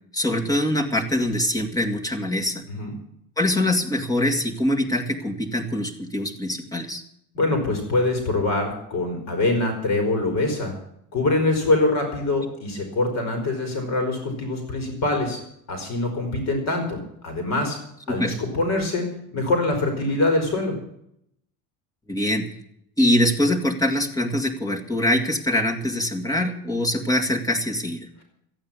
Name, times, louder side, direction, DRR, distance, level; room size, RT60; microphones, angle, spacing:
voice 1, 0.1-2.6 3.4-7.0 12.4-12.5 18.1-18.4 22.1-22.6 23.0-28.1, left 1 dB, 10° left, 2 dB, 2.1 m, -23 dB
voice 2, 7.3-10.7 11.1-15.4 15.7-17.8 18.1-20.8, left 2 dB, 45° left, 4 dB, 4.3 m, -24 dB
14.5 x 9.0 x 8.7 m, 0.74 s
cardioid pair, 155°, 38 cm